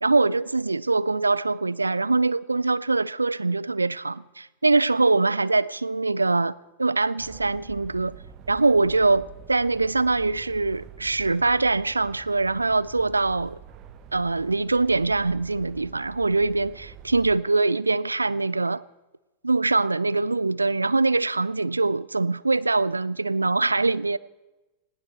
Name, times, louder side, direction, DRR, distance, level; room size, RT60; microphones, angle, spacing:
voice 1, 0.0-8.2 8.5-13.6 14.1-18.8 19.4-24.2, right 3 dB, 80° right, 0.4 m, -23 dB
sound 1, 7.2-17.4, right 8 dB, 35° right, 1.1 m, -46 dB
20.5 x 15.5 x 4.4 m
figure-of-eight pair, 90°, 0 cm